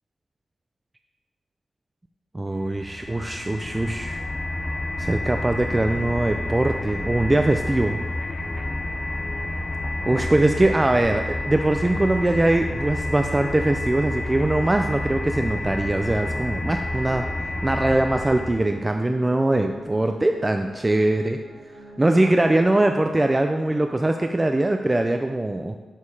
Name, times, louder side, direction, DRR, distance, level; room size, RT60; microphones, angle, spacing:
voice 1, 2.3-4.2 5.0-8.0 10.1-17.3 17.6-21.4 22.0-25.8, right 1 dB, 20° right, 5 dB, 0.5 m, -22 dB
sound 1, 2.6-18.8, left 2 dB, 35° left, 0.6 m, -29 dB
sound 2, 8.4-23.6, right 2 dB, 85° right, 1.2 m, -44 dB
7.4 x 6.5 x 4.8 m, 1.3 s
cardioid pair, 80°, 0 cm